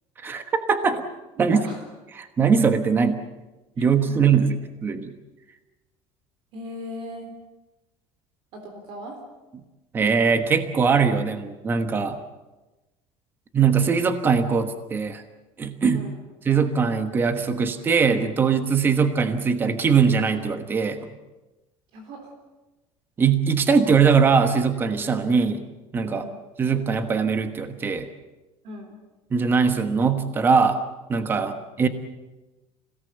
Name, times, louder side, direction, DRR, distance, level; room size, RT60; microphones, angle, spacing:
voice 1, 0.2-1.1 1.4-1.6 2.2-3.2 3.8-5.1 9.9-12.2 13.5-15.2 15.6-16.1 16.4-21.0 23.2-25.6 25.9-26.2 26.6-28.1 29.3-30.8 31.1-31.9, right 5 dB, 20° right, 9 dB, 1.2 m, -21 dB
voice 2, 1.4-1.9 3.8-4.3 6.5-7.3 8.5-9.2 15.9-16.2 21.9-22.3 26.1-26.4 28.6-29.0 31.3-31.6, right 1 dB, 50° right, 3 dB, 3.6 m, -37 dB
27.5 x 17.5 x 8.0 m, 1.1 s
cardioid pair, 180°, 11 cm